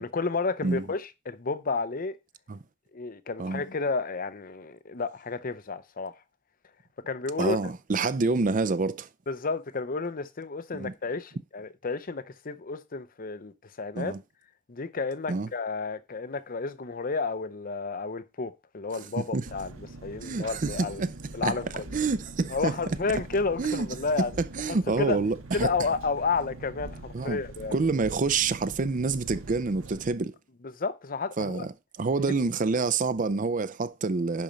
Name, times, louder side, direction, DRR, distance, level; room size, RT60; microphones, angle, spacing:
voice 1, 0.0-2.2 2.9-6.2 7.1-7.6 9.3-14.2 14.7-21.1 21.3-21.8 22.5-24.3 24.7-25.2 25.5-27.8 30.8-31.7 32.3-32.4, left 4 dB, 45° left, 0.7 m, -31 dB
voice 2, 7.4-9.1 10.7-10.9 14.0-14.2 15.3-15.5 19.2-19.5 20.2-21.1 21.4-21.6 21.9-22.7 23.6-23.9 24.2-24.3 24.6-25.7 27.1-27.4 27.7-30.4 31.4-31.7 32.0-34.4, right 4 dB, 40° right, 0.5 m, -27 dB
Engine, 19.5-30.1, right 2 dB, 80° right, 1.4 m, -43 dB
10.5 x 4.3 x 5.2 m
head